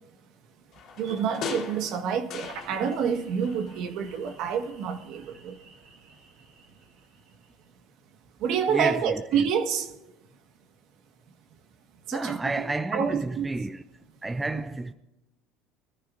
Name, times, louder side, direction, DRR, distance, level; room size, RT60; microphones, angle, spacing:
sound 1, 0.7-3.2 3.4-4.5 4.8-4.9, left 7 dB, 50° left, 2.4 m, -40 dB
voice 1, 1.0-5.5 8.4-9.9 12.1-13.5 14.5-14.6, right 7 dB, 60° right, 1.5 m, -28 dB
sound 2, 2.3-7.7, right 4 dB, 85° right, 3.1 m, -51 dB
voice 2, 8.7-9.5 12.1-13.8 14.2-14.9, right 2 dB, 10° right, 0.4 m, -31 dB
23.5 x 14.5 x 2.6 m
cardioid pair, 130°, 0 cm